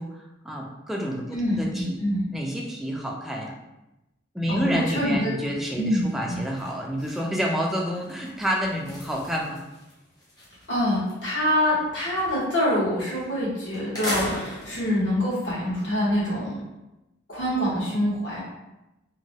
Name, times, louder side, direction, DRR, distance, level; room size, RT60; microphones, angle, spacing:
voice 1, 0.0-2.0 2.3-3.6 4.3-9.6, equal, ahead, -1 dB, 0.4 m, -29 dB
voice 2, 1.3-2.2 4.5-5.3 5.8-6.4 10.7-16.6 17.3-18.4, equal, 70° left, -8 dB, 1.3 m, -25 dB
sound 1, 5.7-5.9 6.2-11.2 11.6-12.7 13.2-13.3 13.7-15.1, equal, 20° left, 0.7 m, -38 dB
3.0 x 2.2 x 2.7 m, 0.96 s
head